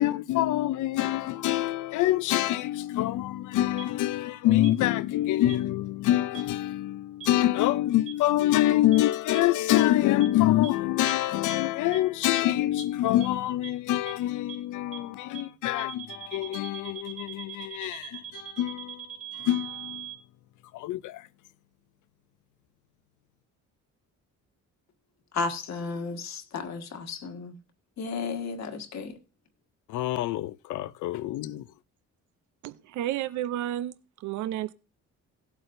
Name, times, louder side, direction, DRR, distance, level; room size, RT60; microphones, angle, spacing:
voice 1, 0.0-19.0 19.4-20.1 20.7-21.2 29.9-31.6, left 14 dB, 80° left, 0.5 m, -26 dB
sound 1, 3.8-3.9 4.6-4.7 5.5-5.6 6.3-6.4 7.2-7.3 8.1-8.2 8.9-9.0 9.3-9.4 9.8-9.9 10.2-10.3 10.6-10.7 11.1-11.2 11.5-11.6 11.9-12.0 12.3-12.4 12.8-12.9 13.2-13.3 13.6-13.7 14.1-14.2 14.5-14.6 14.9-15.0 15.3-15.4 15.8-20.2, right 13 dB, 45° right, 2.2 m, -40 dB
voice 2, 25.3-27.5 28.0-29.2, left 4 dB, 60° left, 1.6 m, -33 dB
voice 3, 32.6-34.7, right 12 dB, 75° right, 0.6 m, -32 dB
16.5 x 8.1 x 2.6 m
cardioid pair, 90°, 30 cm